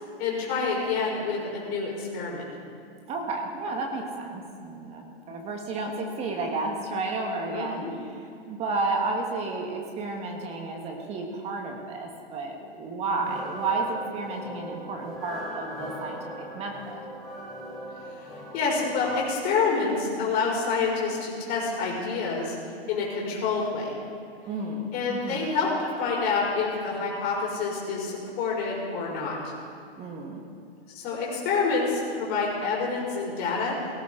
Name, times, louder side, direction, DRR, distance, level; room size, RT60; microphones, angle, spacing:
voice 1, 0.2-2.4 7.5-7.9 13.0-13.2 18.2-18.3 18.5-22.5 22.9-24.0 24.9-25.7 26.0-29.4 30.9-33.7, left 4 dB, 30° left, -3 dB, 4.5 m, -27 dB
voice 2, 3.1-17.0 24.4-25.4 30.0-30.4, right 3 dB, 20° right, 2 dB, 1.6 m, -32 dB
sound 1, 13.2-19.4, equal, ahead, 2.8 m, -40 dB
18.0 x 14.5 x 3.8 m, 2.3 s
hypercardioid pair, 140°, 32 cm